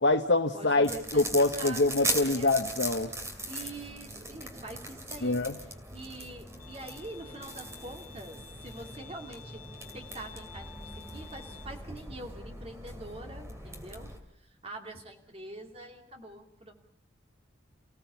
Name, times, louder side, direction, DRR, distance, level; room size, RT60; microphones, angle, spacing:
voice 1, 0.0-3.1 5.2-5.6, left 2 dB, 60° left, 6 dB, 1.0 m, -25 dB
voice 2, 0.5-2.5 3.5-5.4 5.9-9.6 9.9-14.1 14.4-16.7, right 1 dB, 30° right, 3 dB, 2.7 m, -45 dB
sound 1, 0.8-14.2, right 1 dB, 15° right, 2.5 m, -39 dB
Bowed string instrument, 6.6-11.7, left 9 dB, 45° left, 4.9 m, -51 dB
29.5 x 16.5 x 7.0 m, 0.70 s
head